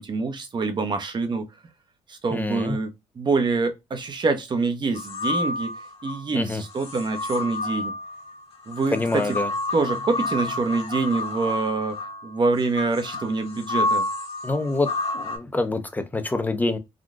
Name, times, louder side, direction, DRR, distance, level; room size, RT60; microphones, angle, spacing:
voice 1, 0.0-1.5 2.1-2.9 3.2-5.7 6.0-7.9 8.7-9.3 9.7-12.0 12.2-14.1, right 3 dB, 40° right, 0.9 m, -25 dB
voice 2, 2.3-2.8 6.3-6.6 8.9-9.5 14.4-14.9 15.1-16.8, left 2 dB, 15° left, 0.7 m, -26 dB
sound 1, 5.0-6.2 6.8-15.4, left 2 dB, 55° left, 1.4 m, -30 dB
3.7 x 2.3 x 2.4 m
supercardioid pair, 65°, 11 cm